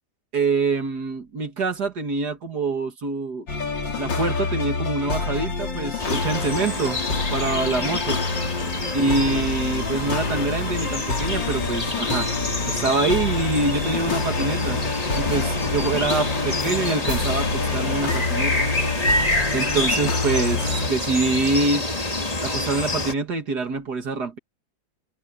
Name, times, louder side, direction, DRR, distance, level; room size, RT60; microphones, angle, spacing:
voice 1, 0.3-3.5 4.0-7.0 7.3-8.2 8.9-12.3 12.7-14.8 15.2-18.7 19.5-21.9 22.4-24.4, right 3 dB, 55° right, 2.4 m, -25 dB
sound 1, 3.5-20.9, left 4 dB, 70° left, 3.2 m, -27 dB
sound 2, 6.0-23.1, left 2 dB, 20° left, 1.9 m, -27 dB
omnidirectional pair, 2.1 m